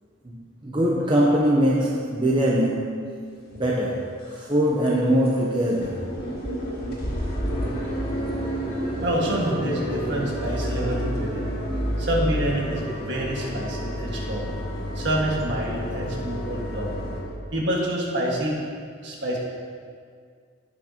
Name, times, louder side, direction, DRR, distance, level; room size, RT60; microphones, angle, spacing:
voice 1, 0.6-3.2 3.5-6.0, equal, 25° right, -4 dB, 0.7 m, -22 dB
sound 1, 3.5-3.6 4.1-4.5 4.8-4.9 5.3-5.4 5.6-17.2, equal, 50° left, 2.1 m, -30 dB
voice 2, 9.0-11.6 12.0-14.5 15.0-16.9 17.5-18.5 19.0-19.4, right 1 dB, 55° right, -3 dB, 1.8 m, -27 dB
16.0 x 6.0 x 2.9 m, 2.1 s
head